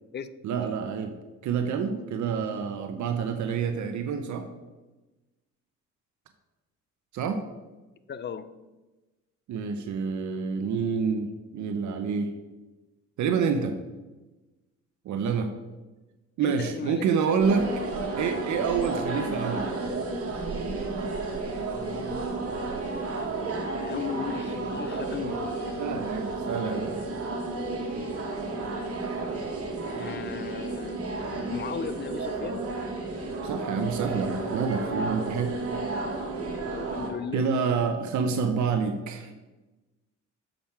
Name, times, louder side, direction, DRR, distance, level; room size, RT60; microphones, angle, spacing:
voice 1, 0.4-1.1 1.4-4.5 7.1-7.4 9.5-12.3 13.2-13.8 15.0-15.5 16.4-17.7 18.2-19.8 25.8-27.1 33.4-35.6 37.3-39.3, right 6 dB, 70° right, 7 dB, 0.8 m, -28 dB
voice 2, 8.1-8.5 16.4-17.7 23.7-25.8 29.9-32.6 36.7-37.5, left 7 dB, 35° left, 13 dB, 0.6 m, -37 dB
sound 1, 17.4-37.1, right 3 dB, 50° right, 1.6 m, -32 dB
7.2 x 5.1 x 5.8 m, 1.1 s
cardioid pair, 90°, 30 cm